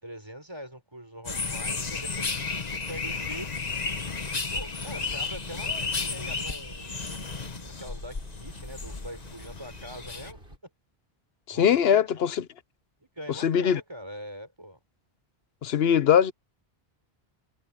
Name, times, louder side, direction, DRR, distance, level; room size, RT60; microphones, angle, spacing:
voice 1, 0.0-3.7 4.5-6.9 7.8-10.4 11.5-12.0 13.0-14.8, equal, 25° right, 5.6 m, -43 dB
sound 1, 1.2-10.3, left 4 dB, 40° left, 1.4 m, -33 dB
sound 2, 4.9-10.6, right 1 dB, 65° right, 8.4 m, -49 dB
voice 2, 11.5-12.4 13.4-13.8 15.6-16.3, left 8 dB, 75° left, 1.0 m, -21 dB
omnidirectional pair, 1.1 m